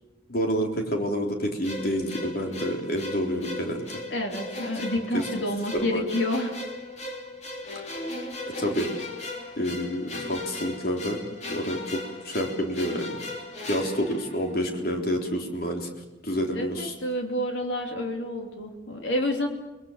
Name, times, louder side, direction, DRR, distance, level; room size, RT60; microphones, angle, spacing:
voice 1, 0.3-3.9 5.1-5.2 5.8-6.0 7.9-8.0 8.6-8.9 9.6-11.2 11.5-12.0 12.2-13.2 13.6-15.9 16.2-16.9, equal, 55° left, 2 dB, 3.9 m, -28 dB
sound 1, 1.6-14.9, left 2 dB, 40° left, 3.5 m, -37 dB
voice 2, 4.1-6.6 16.5-19.5, left 1 dB, 90° left, 3 dB, 3.2 m, -29 dB
30.0 x 21.5 x 7.3 m, 1.1 s
head